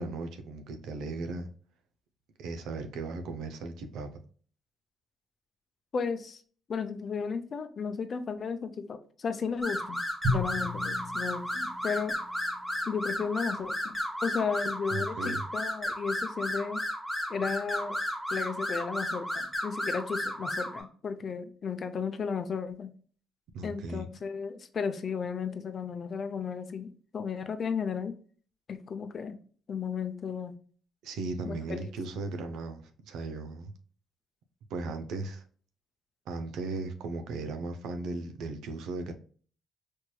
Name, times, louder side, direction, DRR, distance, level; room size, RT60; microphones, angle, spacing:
voice 1, 0.0-1.5 2.4-4.1 14.9-15.4 23.5-24.1 31.0-33.7 34.7-35.4 36.3-39.1, right 3 dB, 85° right, 0.5 m, -37 dB
voice 2, 5.9-6.4 6.7-10.0 10.3-12.2 12.9-13.9 14.2-16.8 17.3-18.0 18.3-22.9 23.6-28.1 28.7-29.4 29.7-30.5 31.5-31.9, left 6 dB, 50° left, 0.5 m, -34 dB
sound 1, 9.6-20.8, left 1 dB, 10° right, 1.4 m, -33 dB
Drum, 10.2-12.6, left 1 dB, 45° right, 1.5 m, -34 dB
4.4 x 3.1 x 2.2 m
cardioid pair, 90°, 0 cm